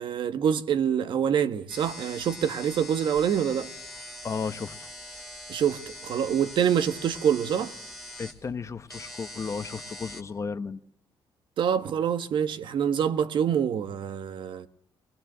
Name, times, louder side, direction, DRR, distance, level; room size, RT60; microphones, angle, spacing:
voice 1, 0.0-3.7 5.5-7.7 11.6-14.7, right 8 dB, 65° right, 1.4 m, -26 dB
sound 1, 1.7-10.2, left 1 dB, 5° left, 2.9 m, -43 dB
voice 2, 4.2-4.9 8.2-10.8, left 5 dB, 35° left, 1.0 m, -34 dB
21.0 x 21.0 x 7.4 m
cardioid pair, 120°, 9 cm